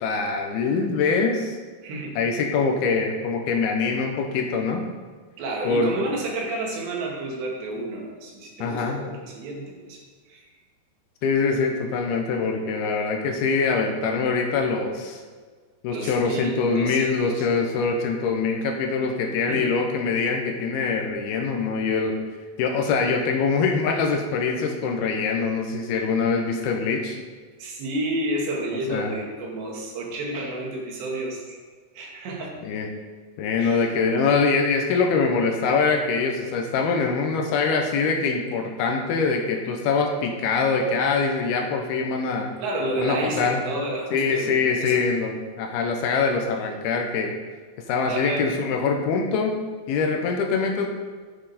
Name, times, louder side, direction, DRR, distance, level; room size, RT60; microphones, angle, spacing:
voice 1, 0.0-1.6 2.2-4.8 5.7-5.9 8.6-9.1 11.2-15.2 15.8-22.2 22.6-27.2 28.9-29.2 32.6-32.9 33.4-42.5 43.0-43.6 44.1-47.3 47.9-49.6 49.9-50.9, left 4 dB, 75° left, 2 dB, 2.7 m, -24 dB
voice 2, 1.8-2.2 5.4-10.0 10.3-10.4 15.9-17.5 19.4-19.7 27.6-31.6 31.9-32.6 33.6-33.9 42.6-45.0 48.1-48.5, right 1 dB, 90° right, -1 dB, 4.2 m, -30 dB
10.0 x 8.7 x 4.2 m, 1.5 s
omnidirectional pair, 4.8 m